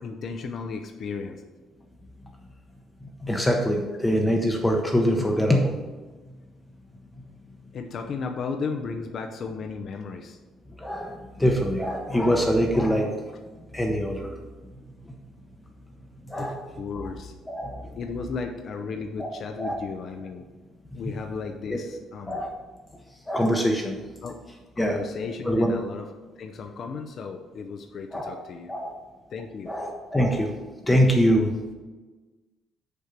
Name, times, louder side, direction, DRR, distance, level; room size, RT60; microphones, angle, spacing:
voice 1, 0.0-1.4 7.7-10.4 16.3-17.3 18.0-20.4 20.9-22.4 24.2-24.3 24.8-26.1 26.4-28.9 29.3-29.7, left 5 dB, 45° left, 5 dB, 0.6 m, -34 dB
voice 2, 3.2-5.8 10.8-13.1 13.7-14.4 16.2-16.7 17.5-18.0 19.2-19.3 19.6-19.8 20.9-21.0 21.7-21.8 22.3-22.6 23.3-24.0 24.8-25.0 25.4-25.7 28.1-28.4 28.7-28.9 29.7-30.5 30.9-31.7, equal, 10° left, 1 dB, 0.8 m, -24 dB
6.7 x 4.4 x 6.6 m, 1.3 s
cardioid pair, 145°, 0 cm